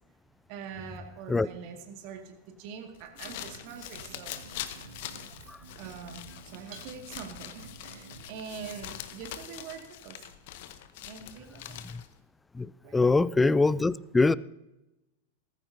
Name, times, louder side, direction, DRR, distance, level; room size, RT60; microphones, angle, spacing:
voice 1, 0.5-4.4 5.8-10.3 11.0-11.8 12.8-13.2, right 7 dB, 45° right, 2.0 m, -44 dB
sound 1, 2.9-12.2, left 12 dB, 50° left, 1.0 m, -43 dB
Drum kit, 3.4-9.0, right 5 dB, 65° right, 1.8 m, -51 dB
voice 2, 12.9-14.3, left 3 dB, 10° left, 0.3 m, -23 dB
18.0 x 14.5 x 2.8 m
figure-of-eight pair, 90°, 0 cm